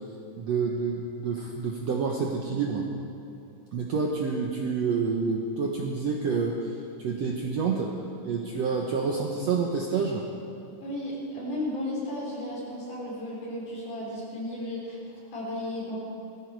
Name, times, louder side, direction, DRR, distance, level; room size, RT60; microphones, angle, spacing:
voice 1, 0.4-2.9 3.7-6.7 7.0-7.9 8.2-10.2, right 5 dB, 65° right, 0 dB, 1.7 m, -28 dB
voice 2, 10.8-16.0, left 1 dB, 60° left, -6 dB, 6.2 m, -34 dB
19.0 x 14.5 x 4.7 m, 2.8 s
omnidirectional pair, 4.1 m